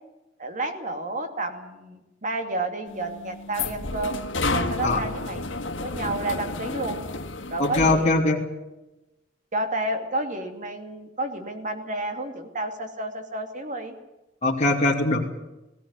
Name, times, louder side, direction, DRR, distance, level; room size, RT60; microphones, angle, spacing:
voice 1, 0.4-4.2 4.5-7.0 7.5-8.1 9.5-13.9, right 2 dB, 40° right, 5 dB, 2.7 m, -31 dB
sound 1, 2.9-8.1, left 3 dB, 90° left, 1.6 m, -31 dB
voice 2, 7.6-8.4 14.4-15.2, left 2 dB, 35° left, -4 dB, 2.8 m, -21 dB
18.0 x 17.5 x 9.8 m, 0.98 s
head